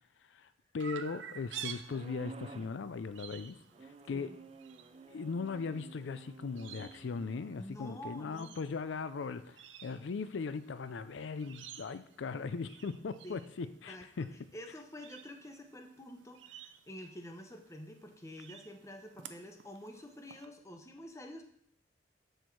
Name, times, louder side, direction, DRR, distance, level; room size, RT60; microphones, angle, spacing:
voice 1, 0.7-3.5 3.8-4.3 5.1-14.3, left 4 dB, 80° left, 13 dB, 0.4 m, -39 dB
Chirp tweet, 0.8-20.5, right 8 dB, 80° right, 0.6 m, -52 dB
sound 1, 1.9-2.8 3.7-7.4, right 4 dB, 30° right, 0.4 m, -51 dB
voice 2, 7.6-8.6 13.2-21.4, equal, 15° left, 4 dB, 0.9 m, -48 dB
13.0 x 4.4 x 4.6 m, 0.68 s
head